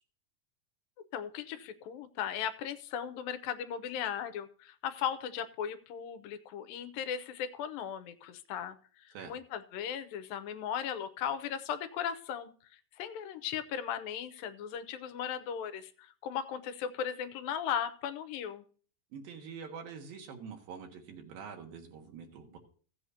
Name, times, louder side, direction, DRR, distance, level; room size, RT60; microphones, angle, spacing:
voice 1, 1.1-18.6, left 8 dB, 85° left, 10 dB, 2.5 m, -37 dB
voice 2, 19.1-22.6, right 6 dB, 90° right, 2 dB, 3.4 m, -45 dB
16.0 x 7.7 x 2.8 m, 0.42 s
omnidirectional pair, 4.0 m